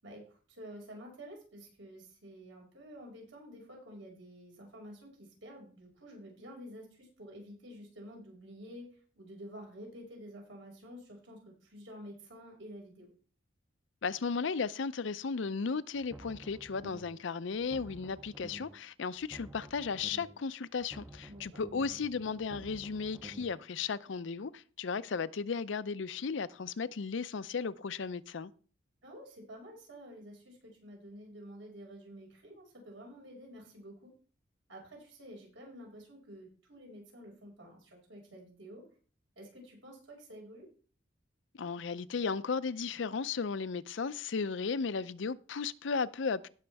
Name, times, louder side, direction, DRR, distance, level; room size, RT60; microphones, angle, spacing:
voice 1, 0.0-13.1 21.3-21.6 29.0-34.1 34.7-38.8 39.4-40.7, equal, 75° right, 5.6 m, -50 dB
voice 2, 14.0-28.5 41.6-46.5, left 5 dB, 70° left, 0.5 m, -35 dB
sound 1, 15.9-17.2 17.5-18.8 19.1-20.4 20.7-23.6, right 1 dB, 10° right, 0.5 m, -51 dB
17.5 x 6.3 x 3.4 m
head